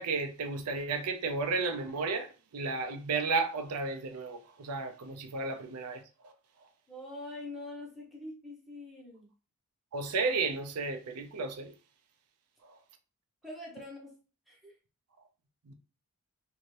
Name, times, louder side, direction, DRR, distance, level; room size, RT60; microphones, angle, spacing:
voice 1, 0.0-6.3 9.9-11.7 12.6-12.8 15.7-15.8, right 4 dB, 85° right, 0.5 m, -33 dB
voice 2, 6.9-9.3 13.4-14.2 14.5-14.7, left 2 dB, ahead, 1.0 m, -44 dB
2.7 x 2.6 x 3.1 m
head